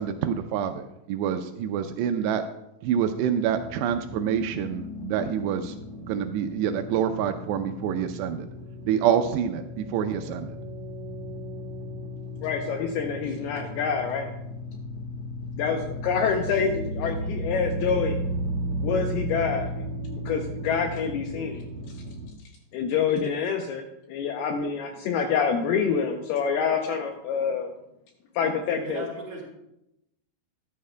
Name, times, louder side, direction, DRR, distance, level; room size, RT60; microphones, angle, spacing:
voice 1, 0.0-2.4 2.8-5.6 6.1-8.5 8.9-10.6, right 9 dB, 85° right, 8 dB, 2.6 m, -27 dB
sound 1, 3.5-22.3, equal, 55° right, 3.3 m, -35 dB
voice 2, 12.4-14.3 15.6-18.2 18.8-19.7 20.1-21.6 22.7-23.8 24.1-27.7 28.4-29.0, left 6 dB, 80° left, 4 dB, 2.3 m, -26 dB
voice 3, 28.8-29.4, right 2 dB, 30° right, -3 dB, 2.4 m, -35 dB
13.5 x 10.5 x 2.2 m, 0.85 s
omnidirectional pair, 5.1 m